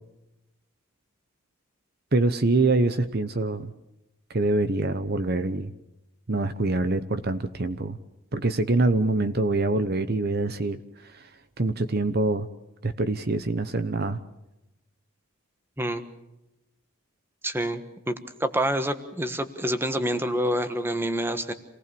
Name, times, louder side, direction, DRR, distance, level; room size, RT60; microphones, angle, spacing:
voice 1, 2.1-3.7 4.3-5.7 6.3-8.0 8.3-11.3 11.6-12.5 12.8-14.2, right 2 dB, 45° right, 12 dB, 1.0 m, -25 dB
voice 2, 15.8-16.1 17.4-18.1 18.4-21.5, equal, 10° right, 10 dB, 1.4 m, -27 dB
27.5 x 18.5 x 7.0 m, 0.92 s
head